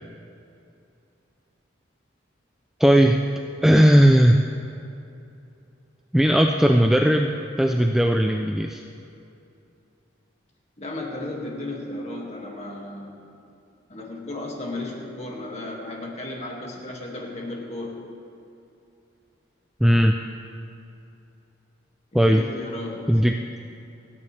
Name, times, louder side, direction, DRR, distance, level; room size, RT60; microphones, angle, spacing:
voice 1, 2.8-3.2 3.6-4.4 6.1-8.8 19.8-20.1 22.1-22.4 23.1-23.4, equal, ahead, 3 dB, 0.4 m, -17 dB
voice 2, 10.8-13.3 13.9-18.0 22.1-23.2, left 2 dB, 35° left, -1 dB, 2.1 m, -34 dB
29.5 x 9.9 x 3.4 m, 2.7 s
head